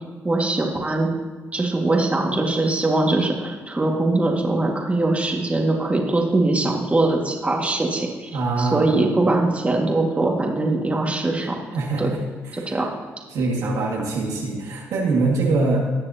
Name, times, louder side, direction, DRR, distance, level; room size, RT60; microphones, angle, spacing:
voice 1, 0.2-1.1 1.5-8.3 8.6-11.6 12.0-12.1 12.5-12.9, right 2 dB, 25° right, 0 dB, 1.9 m, -22 dB
voice 2, 8.3-9.0 11.7-12.2 12.5-12.8 13.3-15.8, right 3 dB, 75° right, -2 dB, 1.9 m, -23 dB
18.0 x 6.7 x 2.8 m, 1.4 s
supercardioid pair, 65°, 6 cm